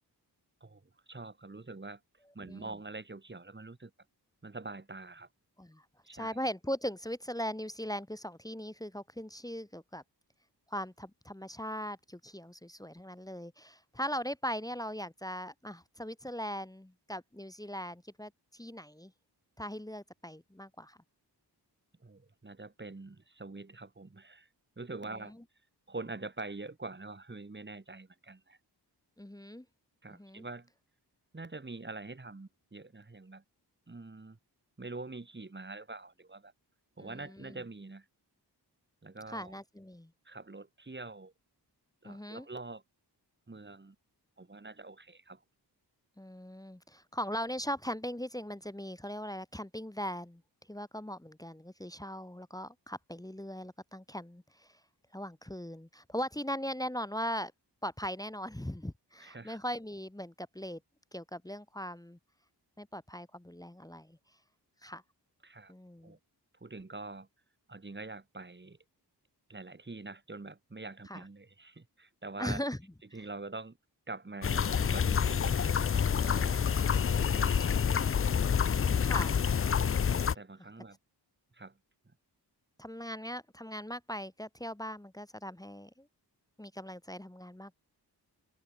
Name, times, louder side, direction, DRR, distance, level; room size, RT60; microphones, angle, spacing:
voice 1, 0.6-2.0 2.3-3.9 4.4-5.3 6.0-6.4 22.0-24.5 24.8-25.3 25.9-28.6 30.0-30.7 31.3-33.4 33.9-34.4 34.8-36.5 37.0-38.1 39.0-39.6 40.3-41.3 42.0-42.8 43.5-44.0 44.4-45.4 59.2-59.6 65.4-65.7 66.0-66.2 66.6-67.3 67.7-68.8 69.5-72.6 73.1-73.8 74.1-78.0 79.3-79.5 80.4-81.0 81.5-81.8, right 3 dB, 25° right, 1.8 m, -45 dB
voice 2, 6.1-10.0 10.7-19.1 19.6-21.0 25.2-25.4 29.2-29.6 30.1-30.4 37.0-37.6 39.3-40.1 42.0-42.5 46.2-50.4 50.7-54.7 55.1-57.5 57.8-60.8 61.1-62.2 62.8-64.2 64.8-65.0 65.7-66.2 71.1-71.2 72.4-72.8 76.1-76.7 79.0-79.4 82.8-86.1 86.6-87.7, equal, 10° left, 1.3 m, -39 dB
sound 1, 74.4-80.3, left 7 dB, 35° left, 0.4 m, -28 dB
wide cardioid pair, 85°, 41 cm